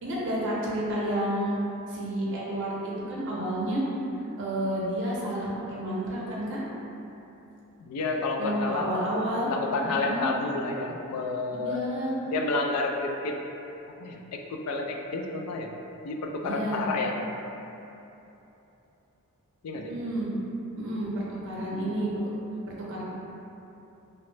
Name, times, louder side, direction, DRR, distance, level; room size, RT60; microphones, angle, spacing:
voice 1, 0.0-1.6 1.9-3.8 4.4-6.6 8.4-9.5 9.9-10.2 11.5-12.1 16.4-16.8 19.9-20.3 20.8-22.1 22.7-23.0, right 1 dB, 55° right, -5 dB, 0.5 m, -30 dB
voice 2, 7.8-8.9 9.4-11.8 12.3-13.4 14.0-15.7 16.0-17.1 19.6-19.9, left 3 dB, 80° left, 3 dB, 0.3 m, -30 dB
2.9 x 2.0 x 3.1 m, 3.0 s
head